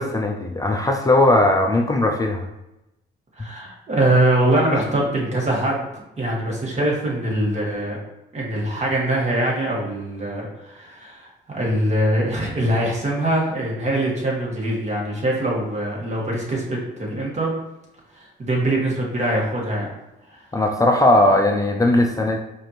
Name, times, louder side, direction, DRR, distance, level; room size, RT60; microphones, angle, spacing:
voice 1, 0.0-2.5 20.5-22.4, left 1 dB, 15° left, 2 dB, 0.4 m, -18 dB
voice 2, 3.4-5.9 6.2-8.0 8.3-17.5 18.1-19.9 20.3-20.4, right 1 dB, 35° right, -3 dB, 1.5 m, -23 dB
4.9 x 2.6 x 2.9 m, 0.93 s
cardioid pair, 90°, 20 cm